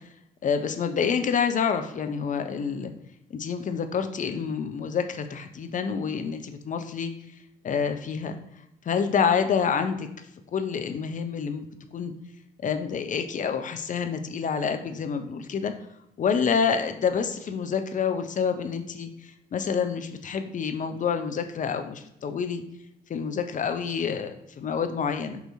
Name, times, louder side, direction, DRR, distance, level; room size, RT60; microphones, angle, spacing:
voice 1, 0.4-2.9 3.3-7.1 7.6-8.3 8.9-10.1 10.5-11.6 11.9-12.1 12.6-15.7 16.2-22.6 23.1-25.4, left 6 dB, 40° left, 8 dB, 0.5 m, -27 dB
5.5 x 2.8 x 2.7 m, 0.81 s
hypercardioid pair, 45°, 20 cm